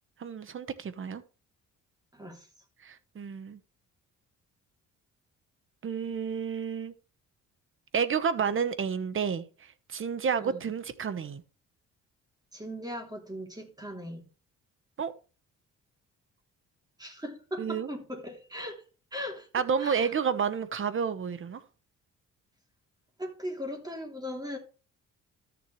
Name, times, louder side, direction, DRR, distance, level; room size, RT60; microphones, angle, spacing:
voice 1, 0.2-1.2 2.8-3.6 5.8-6.9 7.9-11.4 15.0-15.1 17.6-17.9 19.5-21.6, right 6 dB, 45° right, 1.1 m, -30 dB
voice 2, 2.1-2.5 10.4-10.7 12.5-14.3 17.0-18.8 19.1-19.5 19.8-20.1 23.2-24.6, equal, 15° right, 3.0 m, -38 dB
13.0 x 7.0 x 3.2 m
cardioid pair, 90°, 30 cm